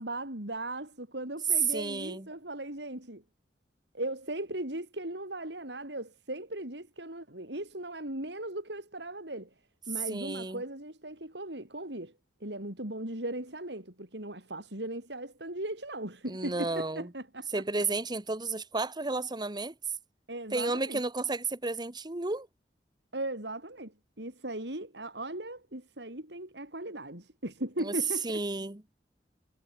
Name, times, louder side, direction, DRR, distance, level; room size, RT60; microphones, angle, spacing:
voice 1, 0.0-3.2 3.9-9.5 9.9-12.1 12.4-17.5 20.3-21.0 23.1-28.4, right 1 dB, 70° right, 6.4 m, -38 dB
voice 2, 1.7-2.3 10.1-10.6 16.3-17.1 17.5-19.7 20.5-22.5 27.8-27.9 28.2-28.8, right 3 dB, 25° right, 1.4 m, -32 dB
head